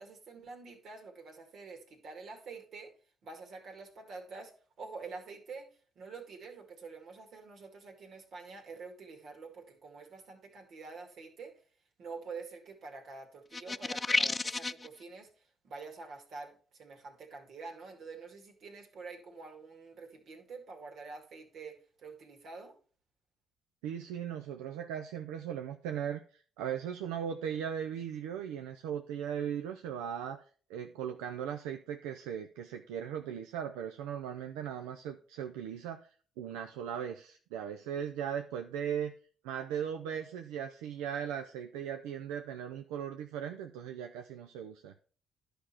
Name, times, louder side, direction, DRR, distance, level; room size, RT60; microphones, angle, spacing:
voice 1, 0.0-2.9 3.2-4.5 4.8-5.7 6.0-11.5 12.0-22.8, right 4 dB, 65° right, 4 dB, 2.2 m, -47 dB
sound 1, 13.5-14.9, left 3 dB, 25° left, 0.3 m, -31 dB
voice 2, 23.8-30.4 30.7-36.1 36.4-39.1 39.4-44.9, right 8 dB, 85° right, 5 dB, 0.5 m, -38 dB
11.0 x 5.1 x 4.3 m, 0.41 s
hypercardioid pair, 55°, 0 cm